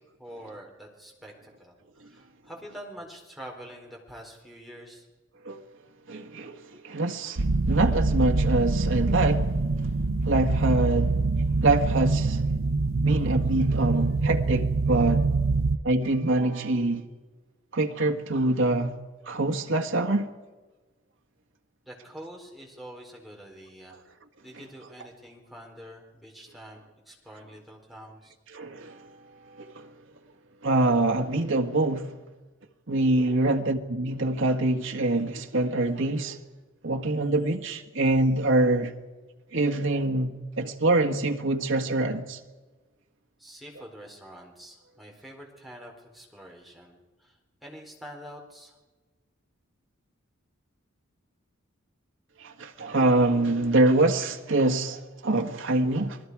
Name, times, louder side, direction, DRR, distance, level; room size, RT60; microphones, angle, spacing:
voice 1, 0.2-5.1 21.9-24.0 24.4-28.3 43.4-47.4 47.6-48.8, equal, ahead, 4.1 m, -46 dB
voice 2, 6.1-9.5 10.2-11.2 11.6-12.4 13.0-15.3 15.8-17.1 17.7-19.0 19.2-20.3 28.5-29.1 29.6-29.9 30.6-32.2 32.9-36.4 36.8-38.9 39.5-42.4 52.4-56.2, right 2 dB, 65° right, 1.6 m, -25 dB
sound 1, 7.4-15.8, right 3 dB, 90° right, 0.8 m, -25 dB
28.5 x 20.0 x 4.8 m
head